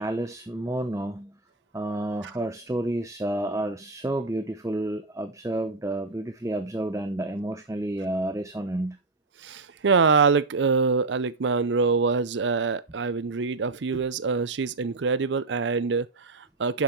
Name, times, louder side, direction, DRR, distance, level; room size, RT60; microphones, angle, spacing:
voice 1, 0.0-1.4 1.7-9.0 13.9-14.0, right 1 dB, 15° right, 0.6 m, -30 dB
voice 2, 9.4-16.8, right 4 dB, 70° right, 0.5 m, -24 dB
9.1 x 7.0 x 3.2 m
head